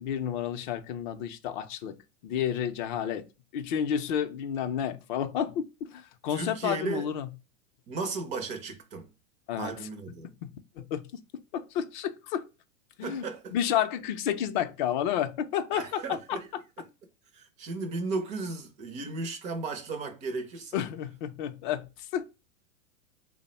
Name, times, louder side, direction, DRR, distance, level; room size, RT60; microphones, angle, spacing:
voice 1, 0.0-3.3 3.5-7.3 9.5-9.7 10.4-11.1 11.5-12.5 13.0-13.2 13.5-16.4 20.7-22.2, left 9 dB, 40° left, 0.4 m, -31 dB
voice 2, 6.3-7.1 7.9-9.1 9.6-10.3 13.0-13.5 15.7-16.5 16.8-16.9 17.3-20.8, right 3 dB, 20° right, 0.4 m, -35 dB
3.3 x 2.1 x 4.1 m
hypercardioid pair, 135°, 39 cm